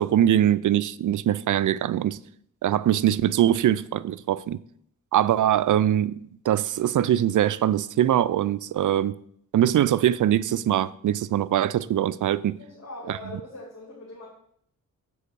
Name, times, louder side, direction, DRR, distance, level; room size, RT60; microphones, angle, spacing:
voice 1, 0.0-2.2 2.6-4.6 5.1-6.1 6.4-9.2 9.5-12.6 13.1-13.2, right 11 dB, 65° right, 0.4 m, -22 dB
voice 2, 12.6-14.3, left 2 dB, 50° left, 2.3 m, -41 dB
7.0 x 4.6 x 6.7 m
cardioid pair, 60°, 34 cm